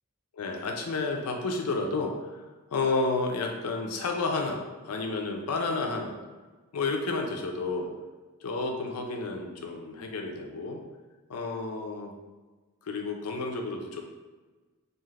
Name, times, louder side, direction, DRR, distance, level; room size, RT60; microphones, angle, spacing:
voice 1, 0.3-2.4 2.7-6.2 6.7-7.9 8.4-10.8 11.3-12.1 12.8-14.0, left 3 dB, 85° left, 3 dB, 0.5 m, -31 dB
2.4 x 2.4 x 3.2 m, 1.3 s
head